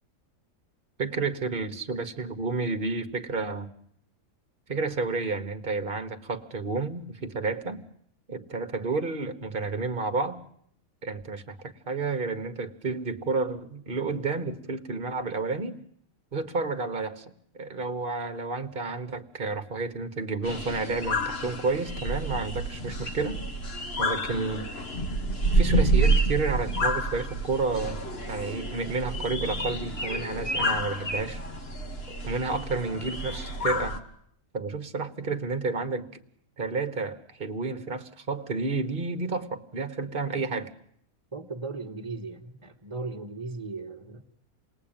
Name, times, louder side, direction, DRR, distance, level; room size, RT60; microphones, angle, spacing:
voice 1, 1.0-3.7 4.7-7.8 8.3-10.4 11.0-15.8 16.3-23.4 24.0-24.7 25.5-28.0 28.3-31.4 32.2-34.0 34.5-36.2 36.6-40.7, right 3 dB, 40° right, 1.5 m, -31 dB
sound 1, 20.4-34.0, right 1 dB, 45° left, 1.9 m, -29 dB
sound 2, 26.0-26.9 27.2-27.8 29.5-31.2, equal, 20° left, 1.3 m, -33 dB
voice 2, 41.3-44.2, right 3 dB, 20° right, 1.6 m, -37 dB
28.0 x 19.5 x 9.0 m
omnidirectional pair, 1.5 m